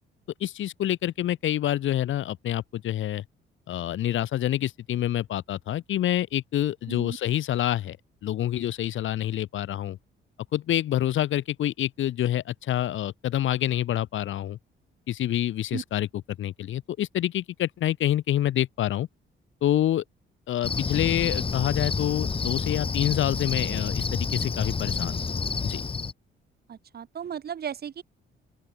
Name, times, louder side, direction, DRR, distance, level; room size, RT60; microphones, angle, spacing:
voice 1, 0.4-3.2 3.7-8.0 8.2-10.0 10.5-14.6 15.1-16.1 16.4-19.1 19.6-20.0 20.5-25.2 25.6-25.8, left 12 dB, 75° left, 4.4 m, -27 dB
Cricket, 20.6-26.1, left 4 dB, 25° left, 3.4 m, -29 dB
voice 2, 26.7-28.0, right 8 dB, 50° right, 6.8 m, -35 dB
open air
cardioid pair, 130°, 20 cm